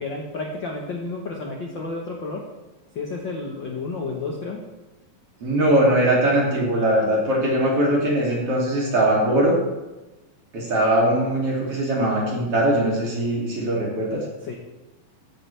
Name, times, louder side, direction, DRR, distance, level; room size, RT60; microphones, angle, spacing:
voice 1, 0.0-2.5 2.9-4.6 14.5-14.6, left 3 dB, 60° left, 0 dB, 1.2 m, -31 dB
voice 2, 5.4-9.6 10.5-14.3, right 1 dB, 40° right, -4 dB, 3.7 m, -21 dB
15.0 x 11.0 x 3.5 m, 1.1 s
omnidirectional pair, 4.1 m